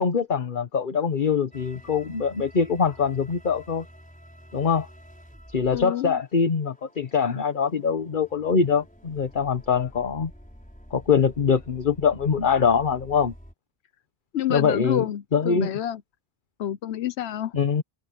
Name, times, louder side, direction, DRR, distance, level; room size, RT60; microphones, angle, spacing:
voice 1, 0.0-3.8 4.5-4.9 5.5-10.3 10.9-13.3 14.5-15.0 15.3-15.7 17.5-17.8, left 6 dB, 50° left, 1.2 m, -23 dB
sound 1, 1.5-13.5, equal, 5° left, 5.0 m, -49 dB
voice 2, 5.7-6.2 14.3-16.0 16.6-17.5, left 11 dB, 90° left, 1.0 m, -28 dB
omnidirectional pair, 1.1 m